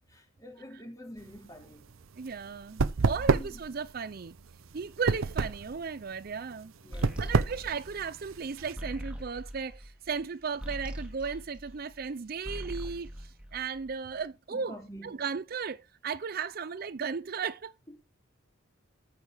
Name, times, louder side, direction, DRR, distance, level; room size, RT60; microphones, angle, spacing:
voice 1, 0.1-1.9 3.3-3.6 6.8-7.3 14.5-15.1, equal, 15° left, 3.4 m, -47 dB
sound 1, 1.2-8.7, right 4 dB, 85° right, 0.7 m, -30 dB
voice 2, 2.2-4.4 4.7-6.7 7.2-14.8 15.0-17.7, right 5 dB, 45° right, 0.5 m, -36 dB
sound 2, 6.9-12.1 12.4-14.1, equal, 5° right, 2.2 m, -41 dB
14.5 x 6.4 x 5.0 m
head